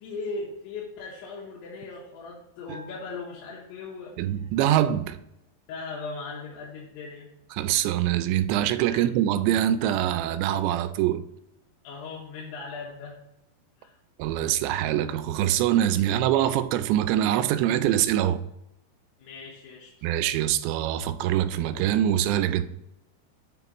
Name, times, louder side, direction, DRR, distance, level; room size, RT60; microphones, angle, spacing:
voice 1, 0.0-4.1 5.7-7.3 8.9-9.1 11.8-13.2 13.8-13.9 19.2-19.9, left 3 dB, 75° left, 3.1 m, -38 dB
Bell, 2.7-4.3, equal, 70° right, 3.8 m, -51 dB
voice 2, 4.2-5.2 7.5-11.2 14.2-18.4 20.0-22.6, right 11 dB, 85° right, 2.7 m, -24 dB
7.6 x 5.9 x 3.0 m
omnidirectional pair, 4.9 m